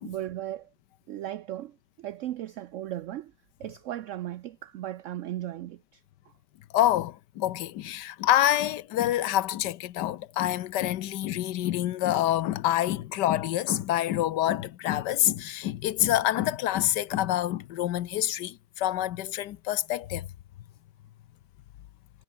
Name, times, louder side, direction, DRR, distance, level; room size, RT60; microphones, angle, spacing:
voice 1, 0.0-0.7 1.1-3.3 3.6-6.0, right 13 dB, 70° right, 0.7 m, -36 dB
voice 2, 6.7-20.3, left 13 dB, 90° left, 1.4 m, -27 dB
omnidirectional pair, 1.8 m